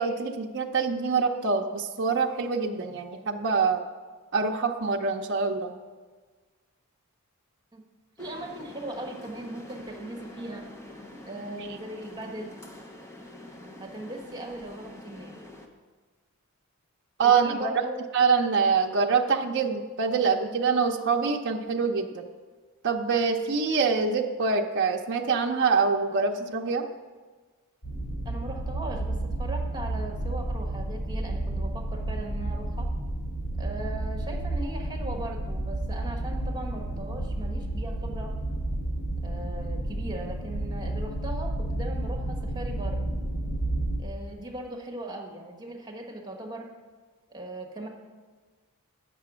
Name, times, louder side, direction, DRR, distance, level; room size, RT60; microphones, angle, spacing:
voice 1, 0.0-3.8 4.3-5.7 17.2-17.7 18.1-22.3 22.8-26.9, right 5 dB, 55° right, 2 dB, 0.6 m, -25 dB
sound 1, 8.2-15.7, left 1 dB, 10° left, 0.8 m, -46 dB
voice 2, 8.2-10.7 11.2-12.6 13.8-15.4 17.2-18.0 28.2-32.9 33.6-38.3 39.2-43.0 44.0-46.7 47.3-47.9, right 1 dB, 20° right, 1 dB, 1.2 m, -39 dB
sound 2, 27.8-44.0, right 1 dB, 85° left, 3.3 m, -31 dB
8.4 x 6.8 x 6.1 m, 1.4 s
head